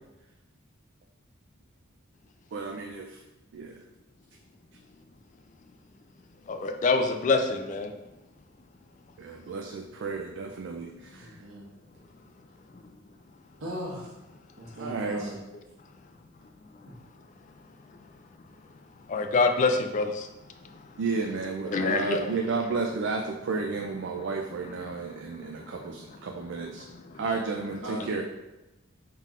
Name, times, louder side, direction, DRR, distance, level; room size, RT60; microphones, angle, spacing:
voice 1, 2.5-3.2 3.5-3.8 9.2-11.3 14.8-15.3 21.0-26.8 27.2-28.2, right 4 dB, 60° right, 2 dB, 0.4 m, -32 dB
voice 2, 6.5-7.9 19.1-20.3 21.7-22.2 26.9-27.0, left 3 dB, 35° left, 6 dB, 0.3 m, -25 dB
voice 3, 11.2-11.7 13.6-14.1 14.6-15.4 27.8-28.2, equal, 80° right, -3 dB, 1.2 m, -38 dB
5.5 x 3.7 x 2.4 m, 1.0 s
head